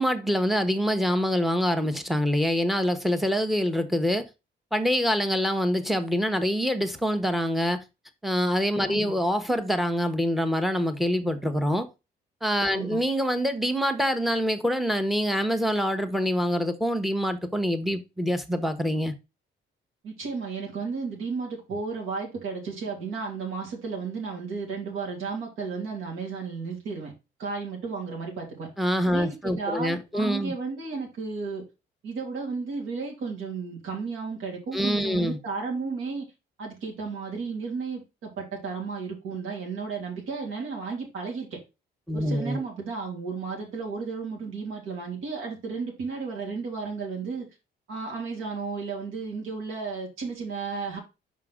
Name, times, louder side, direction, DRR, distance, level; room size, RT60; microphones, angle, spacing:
voice 1, 0.0-4.3 4.7-7.8 8.2-11.9 12.4-19.1 28.8-30.5 34.7-35.4 42.1-42.6, equal, ahead, 1.0 m, -25 dB
voice 2, 20.0-27.1 27.4-28.7 29.1-31.6 32.0-36.3 36.6-41.6 42.1-47.5 47.9-51.0, right 4 dB, 85° right, 2.9 m, -33 dB
5.8 x 5.1 x 3.7 m
cardioid pair, 90°, 20 cm